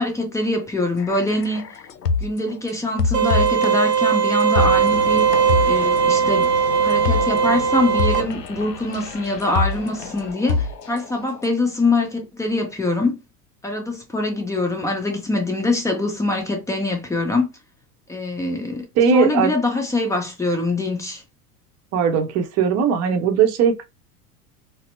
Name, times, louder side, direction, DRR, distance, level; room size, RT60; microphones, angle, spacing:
voice 1, 0.0-1.7 2.2-5.3 5.7-6.5 6.8-13.2 13.6-17.5 18.1-21.2, left 2 dB, 5° left, 0.6 m, -23 dB
sound 1, 1.0-2.6 3.0-11.5, left 4 dB, 85° left, 0.5 m, -26 dB
sound 2, 3.1-8.2, right 7 dB, 85° right, 0.7 m, -19 dB
sound 3, 4.6-10.3, left 4 dB, 40° left, 1.2 m, -34 dB
voice 2, 19.0-19.5 21.9-23.8, right 7 dB, 35° right, 0.8 m, -19 dB
4.2 x 2.1 x 2.5 m
figure-of-eight pair, 80°, 47 cm